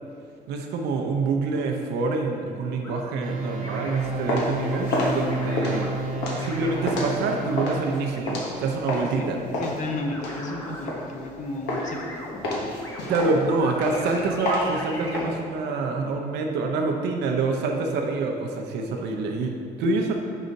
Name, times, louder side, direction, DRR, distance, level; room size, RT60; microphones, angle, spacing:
voice 1, 0.5-5.9 6.3-9.4 13.1-20.1, right 3 dB, 80° right, 3 dB, 0.7 m, -26 dB
sound 1, 2.8-3.0 3.6-4.2 4.7-5.9 6.4-7.5 8.2-9.5 10.1-10.8 11.6-15.3, left 1 dB, 20° left, 1.1 m, -39 dB
sound 2, 3.2-8.4, right 3 dB, 55° right, 1.1 m, -32 dB
sound 3, 4.0-9.2 9.5-11.4 11.7-12.1 12.4-15.2, left 1 dB, 85° left, 1.2 m, -29 dB
voice 2, 9.6-12.2, left 2 dB, 45° left, 3 dB, 0.7 m, -33 dB
5.5 x 5.0 x 4.0 m, 2.3 s
cardioid pair, 110°, 17 cm